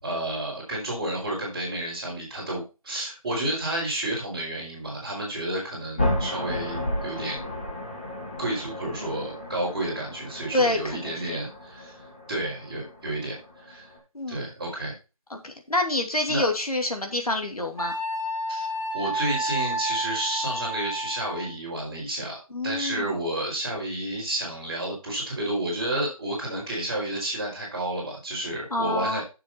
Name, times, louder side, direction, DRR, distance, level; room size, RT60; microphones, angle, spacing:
voice 1, 0.0-7.5 8.4-12.0 12.3-13.9 14.3-14.9 16.3-16.4 18.5-18.6 18.9-22.4 22.6-29.2, right 1 dB, 10° right, -9 dB, 3.7 m, -31 dB
sound 1, 6.0-14.0, left 1 dB, 15° left, 1.7 m, -33 dB
voice 2, 10.5-11.4 14.1-14.4 15.3-18.0 22.5-23.1 28.7-29.2, left 2 dB, 90° left, 4 dB, 2.5 m, -27 dB
Wind instrument woodwind instrument, 17.8-21.6, right 1 dB, 50° left, 4.0 m, -30 dB
9.2 x 6.8 x 4.2 m, 0.29 s
figure-of-eight pair, 175°, 18 cm